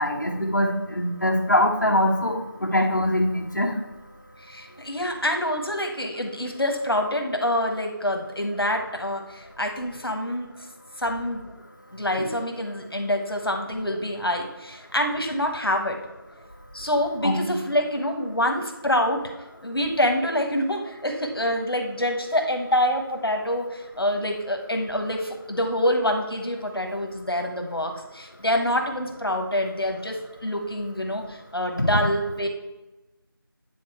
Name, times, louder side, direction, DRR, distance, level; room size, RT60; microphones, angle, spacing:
voice 1, 0.0-3.7 17.2-17.3 31.8-32.0, left 1 dB, 50° left, -2 dB, 1.3 m, -23 dB
voice 2, 4.5-10.5 11.0-11.4 11.9-16.0 16.7-19.3 19.6-32.5, left 1 dB, 80° left, 3 dB, 1.3 m, -26 dB
9.5 x 3.6 x 4.5 m, 1.0 s
figure-of-eight pair, 180°, 12 cm